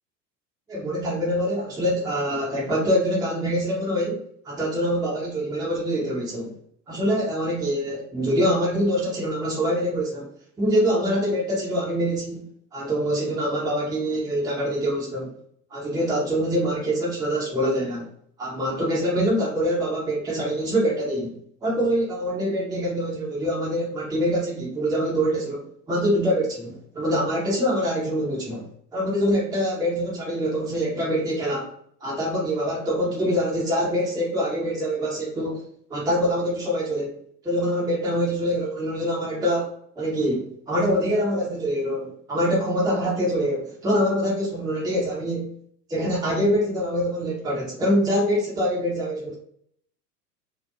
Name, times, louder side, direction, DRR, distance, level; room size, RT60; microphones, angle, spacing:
voice 1, 0.7-6.5 6.9-10.3 10.6-12.4 12.7-15.3 15.7-18.1 18.4-31.7 32.0-35.6 35.9-37.2 37.4-45.5 45.9-49.3, equal, 10° right, -5 dB, 0.7 m, -25 dB
2.9 x 2.0 x 2.2 m, 0.67 s
hypercardioid pair, 85°, 49 cm